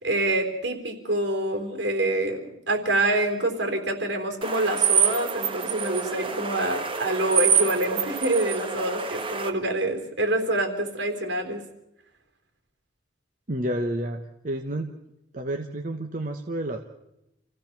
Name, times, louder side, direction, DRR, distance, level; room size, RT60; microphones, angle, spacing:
voice 1, 0.0-11.6, right 1 dB, 70° right, 4 dB, 3.7 m, -26 dB
sound 1, 4.4-9.5, right 7 dB, 30° right, 1.5 m, -26 dB
voice 2, 13.5-14.9 15.3-16.8, right 1 dB, 45° right, 4 dB, 1.1 m, -30 dB
28.0 x 15.5 x 5.9 m, 0.87 s
head